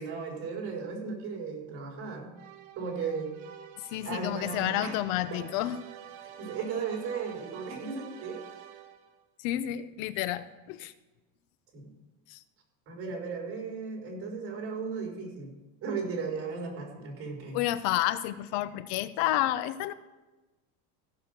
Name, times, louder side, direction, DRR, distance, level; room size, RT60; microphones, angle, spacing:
voice 1, 0.0-2.3 2.8-3.3 4.0-5.0 5.3-5.4 6.2-8.4 11.7-11.9 12.9-15.5 15.8-17.6, right 5 dB, 45° right, 0 dB, 4.4 m, -36 dB
sound 1, 2.4-9.2, right 9 dB, 75° right, 1.3 m, -47 dB
voice 2, 3.9-5.8 9.4-10.9 12.3-12.4 17.5-19.9, left 14 dB, 70° left, 14 dB, 0.7 m, -30 dB
15.5 x 6.5 x 6.7 m, 1.1 s
cardioid pair, 130°, 32 cm